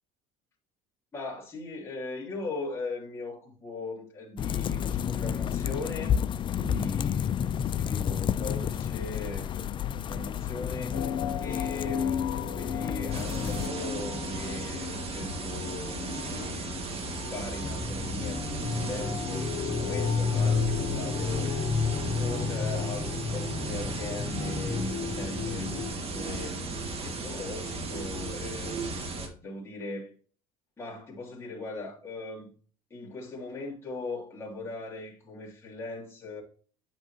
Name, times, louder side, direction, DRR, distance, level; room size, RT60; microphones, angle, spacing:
voice 1, 1.1-16.9 17.3-21.7 22.1-26.6 27.0-30.1 30.8-32.5 32.9-36.4, left 2 dB, 15° left, 2.9 m, -39 dB
sound 1, 4.4-13.7, left 9 dB, 35° left, 0.4 m, -31 dB
sound 2, 10.9-25.9, left 5 dB, 55° left, 2.7 m, -32 dB
sound 3, 13.1-29.3, right 2 dB, 40° right, 2.1 m, -36 dB
9.0 x 5.7 x 3.0 m
cardioid pair, 115°, 15 cm